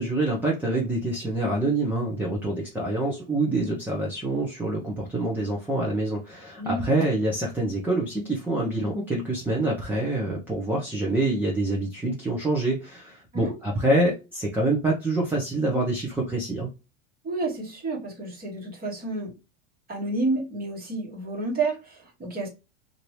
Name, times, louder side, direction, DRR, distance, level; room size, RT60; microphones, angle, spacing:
voice 1, 0.0-16.7, right 2 dB, 5° right, 0.7 m, -26 dB
voice 2, 6.6-7.0 13.3-13.5 17.2-19.3 19.9-22.5, right 2 dB, 25° right, 1.3 m, -30 dB
2.9 x 2.6 x 3.1 m
supercardioid pair, 125°, 39 cm